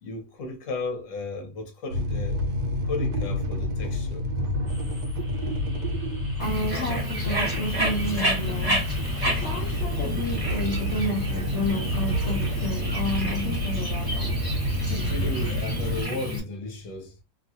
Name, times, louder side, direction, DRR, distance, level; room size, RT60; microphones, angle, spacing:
voice 1, 0.0-2.4 2.8-4.2 14.9-17.1, left 3 dB, 50° left, 1.0 m, -34 dB
sound 1, 1.9-16.0, left 1 dB, 75° right, 1.3 m, -29 dB
sound 2, 4.7-16.3, equal, 10° left, 0.9 m, -45 dB
voice 2, 6.4-8.9 9.2-14.3, left 1 dB, 70° left, 0.6 m, -31 dB
Bird, 6.4-16.4, equal, 20° right, 0.7 m, -31 dB
3.0 x 2.3 x 2.7 m
omnidirectional pair, 2.0 m